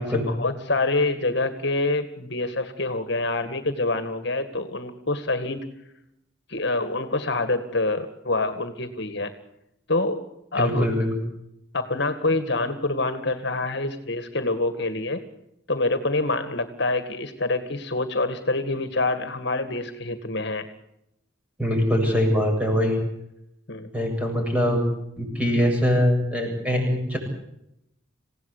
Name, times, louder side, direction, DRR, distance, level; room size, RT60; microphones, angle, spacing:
voice 1, 0.0-5.7 6.5-9.3 9.9-10.2 10.5-10.9 11.7-15.2 15.7-20.7 23.7-23.9, left 2 dB, 55° left, 9 dB, 2.0 m, -26 dB
voice 2, 10.6-11.2 21.6-23.0 23.9-24.8 25.2-27.2, equal, 5° right, 2 dB, 7.7 m, -22 dB
28.0 x 17.0 x 8.4 m, 0.82 s
head